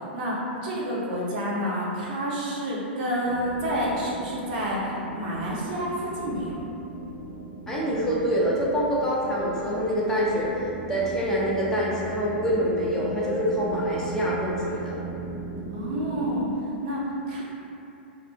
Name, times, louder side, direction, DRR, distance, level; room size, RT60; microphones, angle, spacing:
voice 1, 0.1-6.6 15.7-16.5 16.8-17.4, equal, 50° right, -4 dB, 0.5 m, -29 dB
sound 1, 3.2-16.4, right 3 dB, 80° left, 0.5 m, -38 dB
voice 2, 7.7-10.5 10.9-15.0, equal, 10° left, -7 dB, 0.4 m, -25 dB
2.4 x 2.2 x 2.7 m, 2.8 s
figure-of-eight pair, 105°, 6 cm